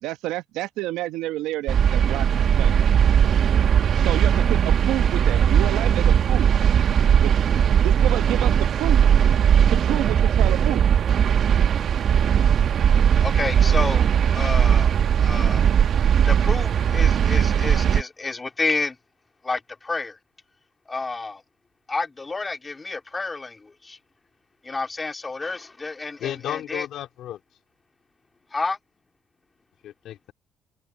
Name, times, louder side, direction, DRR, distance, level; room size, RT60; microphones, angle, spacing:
voice 1, 0.0-2.8 4.0-6.5 7.2-7.3 7.8-9.1 9.7-10.8, right 16 dB, 80° right, 1.0 m, -29 dB
sound 1, 1.7-18.0, right 8 dB, 60° right, 1.6 m, -19 dB
voice 2, 13.2-15.7 16.2-19.0 19.4-20.2 20.9-21.4 21.9-24.0 24.6-26.9 28.5-28.7, left 3 dB, 25° left, 3.1 m, -30 dB
voice 3, 26.2-27.4 29.8-30.3, left 12 dB, 70° left, 2.4 m, -33 dB
hypercardioid pair, 60°, 0 cm